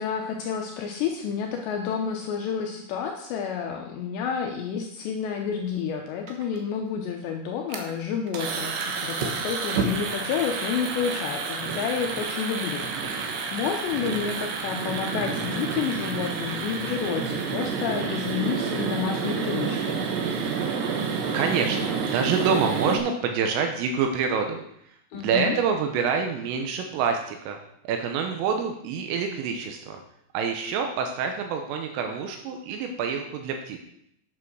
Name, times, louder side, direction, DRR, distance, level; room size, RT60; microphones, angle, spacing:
voice 1, 0.0-20.0 25.1-25.6, left 7 dB, 80° left, 2 dB, 2.6 m, -30 dB
sound 1, 6.3-6.6 7.7-7.9 8.3-23.0, right 5 dB, 70° right, 2.9 m, -29 dB
voice 2, 21.3-27.6 27.9-30.0 30.3-33.8, right 6 dB, 85° right, 4 dB, 3.5 m, -27 dB
8.6 x 8.0 x 6.4 m, 0.73 s
omnidirectional pair, 5.9 m